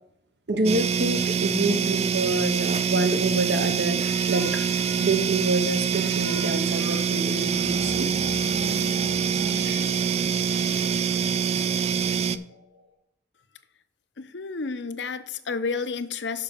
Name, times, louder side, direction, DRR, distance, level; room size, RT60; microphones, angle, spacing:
voice 1, 0.5-4.7 5.0-8.1, right 2 dB, 65° right, 8 dB, 0.9 m, -27 dB
sound 1, 0.6-12.4, right 7 dB, 35° right, 0.3 m, -25 dB
sound 2, 4.0-12.9, left 1 dB, 80° right, 2.6 m, -41 dB
voice 2, 14.2-16.4, left 4 dB, 70° left, 11 dB, 0.7 m, -31 dB
6.8 x 5.5 x 6.7 m, 0.77 s
head